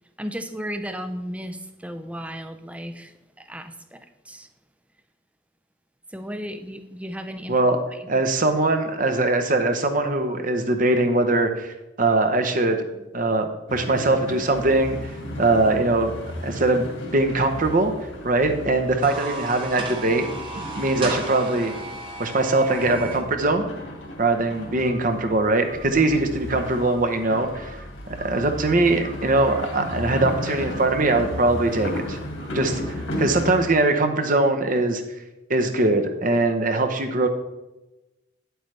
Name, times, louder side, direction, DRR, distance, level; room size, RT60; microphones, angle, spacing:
voice 1, 0.2-4.5 6.1-7.6 7.9-8.1 33.1-33.3, equal, 5° right, 9 dB, 0.4 m, -35 dB
voice 2, 8.1-12.8 13.1-15.0 15.4-16.1 16.4-17.9 18.2-20.3 20.8-21.7 22.2-23.7 24.2-27.7 28.1-32.2 32.5-35.0 35.5-37.3, right 2 dB, 45° right, 7 dB, 0.9 m, -21 dB
sound 1, 13.7-33.6, left 1 dB, 85° left, 2.0 m, -35 dB
sound 2, 18.9-23.2, right 3 dB, 25° right, 1.3 m, -34 dB
9.4 x 7.9 x 3.3 m, 1.0 s
head